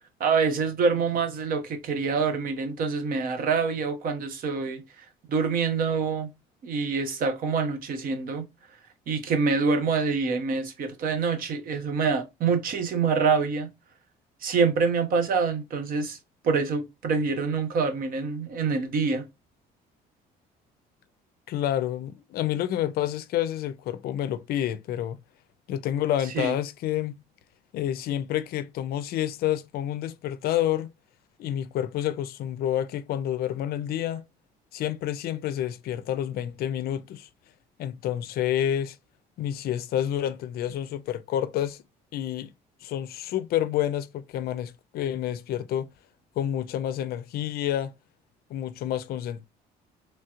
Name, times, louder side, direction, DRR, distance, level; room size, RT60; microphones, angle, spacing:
voice 1, 0.2-6.3 6.6-8.5 9.1-13.7 14.4-16.2 16.4-19.3 26.3-26.5, right 5 dB, 60° right, 0.8 m, -26 dB
voice 2, 21.5-25.2 25.7-27.2 27.7-30.9 31.4-34.2 34.7-37.3 37.8-39.0 39.4-41.8 42.1-42.5 42.8-45.9 46.4-47.9 48.5-49.5, left 11 dB, 65° left, 0.4 m, -29 dB
3.1 x 2.8 x 2.3 m
cardioid pair, 110°, 17 cm